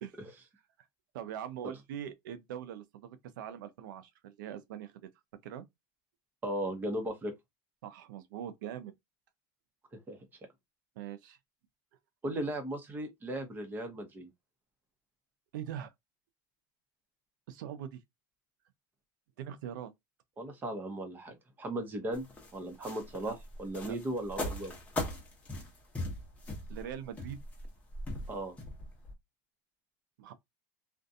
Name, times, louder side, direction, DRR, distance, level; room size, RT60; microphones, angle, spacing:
voice 1, 0.0-0.4 1.1-5.1 5.4-5.6 7.8-8.9 11.0-11.4 15.5-15.9 17.5-18.0 19.4-19.9 23.3-23.4 23.9-24.0 26.7-27.4 30.2-30.3, right 10 dB, 85° right, 0.5 m, -42 dB
voice 2, 6.4-7.3 9.9-10.2 12.2-14.3 20.4-22.2 22.5-24.7 28.3-28.6, right 1 dB, 20° right, 0.8 m, -37 dB
sound 1, 22.1-29.1, left 1 dB, 15° left, 0.9 m, -39 dB
2.5 x 2.2 x 2.6 m
supercardioid pair, 140°, 10 cm